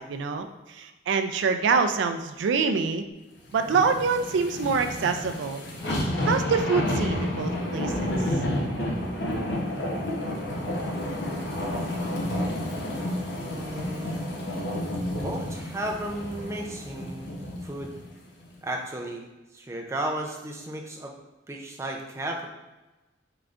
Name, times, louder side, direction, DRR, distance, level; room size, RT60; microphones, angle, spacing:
voice 1, 0.0-3.0 3.5-5.6 6.2-8.1, right 5 dB, 90° right, 7 dB, 0.3 m, -25 dB
sound 1, 3.5-18.0 18.4-18.5, left 1 dB, 70° left, 0.7 m, -30 dB
voice 2, 13.5-14.4 15.1-17.9 18.6-19.2 19.5-21.1 21.5-22.5, right 1 dB, 15° right, 1 dB, 0.4 m, -34 dB
3.9 x 3.3 x 2.4 m, 1.1 s
head